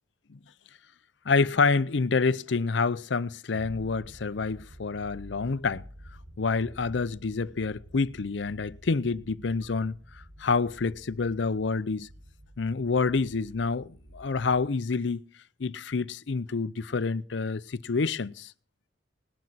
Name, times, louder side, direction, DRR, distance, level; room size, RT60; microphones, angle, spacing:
voice 1, 1.3-5.8 6.4-10.0 10.4-12.1 12.6-15.2 15.6-18.5, left 4 dB, 75° left, 0.6 m, -27 dB
sound 1, 3.5-14.7, equal, 65° right, 4.9 m, -50 dB
19.0 x 12.0 x 4.1 m
head